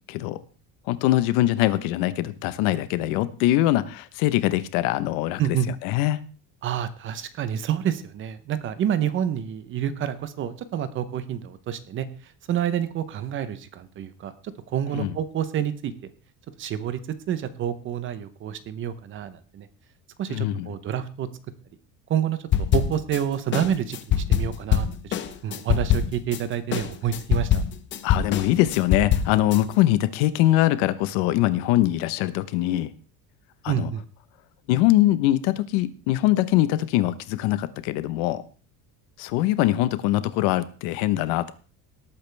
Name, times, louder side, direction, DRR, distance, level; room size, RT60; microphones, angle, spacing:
voice 1, 0.1-0.4 0.9-5.6 5.8-6.2 14.9-15.2 20.3-20.7 28.0-32.9 33.6-33.9 34.7-38.4 39.2-41.5, left 15 dB, 80° left, 14 dB, 1.1 m, -22 dB
voice 2, 6.6-14.3 14.7-15.9 16.6-17.0 17.3-19.7 20.2-21.3 22.1-27.6 33.7-34.0, right 9 dB, 30° right, 13 dB, 0.9 m, -28 dB
sound 1, 22.5-23.2 23.5-26.4 26.7-29.6, left 9 dB, 30° left, 0.8 m, -23 dB
18.5 x 8.7 x 3.4 m, 0.39 s
cardioid pair, 175°, 37 cm